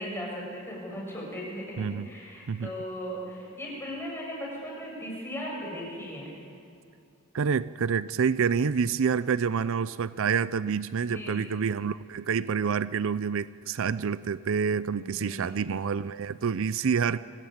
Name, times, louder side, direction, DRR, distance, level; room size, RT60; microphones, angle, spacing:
voice 1, 0.0-6.3 11.0-11.4 15.0-15.8, equal, 10° left, -3 dB, 7.0 m, -37 dB
voice 2, 7.3-17.2, right 6 dB, 60° right, 16 dB, 0.5 m, -27 dB
24.0 x 18.0 x 8.8 m, 2.4 s
head